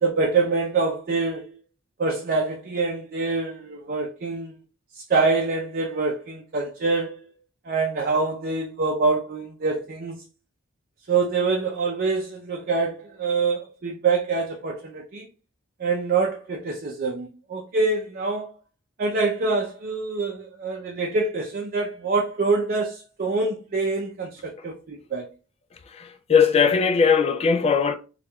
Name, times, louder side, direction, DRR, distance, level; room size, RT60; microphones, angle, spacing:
voice 1, 0.0-1.6 2.0-4.5 5.0-7.3 7.7-10.2 11.1-15.3 15.8-18.5 19.0-25.3, right 4 dB, 45° right, 0.5 m, -25 dB
voice 2, 25.9-27.9, left 6 dB, 30° left, 0.3 m, -19 dB
4.3 x 2.3 x 2.2 m
head